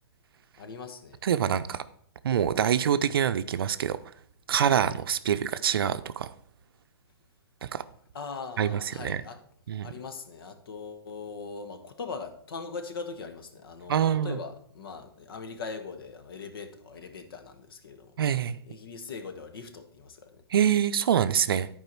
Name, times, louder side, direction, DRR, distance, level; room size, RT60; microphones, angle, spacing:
voice 1, 0.6-1.2 8.1-9.4 9.8-18.2 18.6-20.4, left 4 dB, 65° left, 1.3 m, -40 dB
voice 2, 1.2-1.8 2.2-4.0 4.5-6.3 7.6-7.8 8.6-8.7 9.0-9.2 9.7-9.9 13.9-14.4 18.2-18.6 20.5-21.7, right 9 dB, 65° right, 0.5 m, -25 dB
10.5 x 4.7 x 4.5 m
hypercardioid pair, 125°, 13 cm